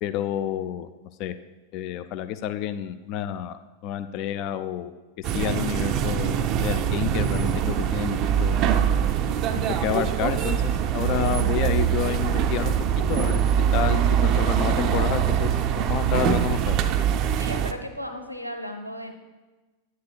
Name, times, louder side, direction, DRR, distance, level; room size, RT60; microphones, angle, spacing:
voice 1, 0.0-0.9 1.2-1.3 1.7-4.9 5.3-8.6 9.8-10.6 10.9-12.8 13.1-13.4 13.7-16.8, left 11 dB, 40° left, 11 dB, 0.3 m, -29 dB
sound 1, 5.2-17.7, right 9 dB, 35° right, 0.4 m, -23 dB
sound 2, 5.9-14.0, left 4 dB, 20° left, 0.8 m, -41 dB
voice 2, 17.4-19.1, equal, 90° right, 6 dB, 0.8 m, -35 dB
9.4 x 9.3 x 2.3 m, 1.2 s
figure-of-eight pair, 90°, 0 cm